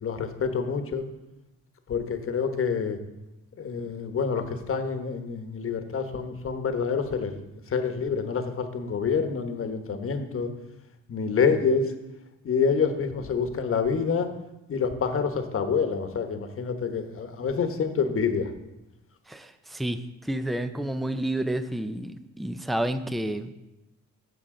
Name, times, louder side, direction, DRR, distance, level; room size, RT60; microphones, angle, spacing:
voice 1, 0.0-1.0 1.9-3.0 3.6-10.5 11.1-11.9 12.4-14.3 14.7-18.5, left 5 dB, 45° left, 7 dB, 1.2 m, -27 dB
voice 2, 19.3-20.0 20.2-23.5, right 1 dB, ahead, 10 dB, 0.5 m, -30 dB
15.0 x 5.8 x 3.8 m, 0.94 s
cardioid pair, 90°, 30 cm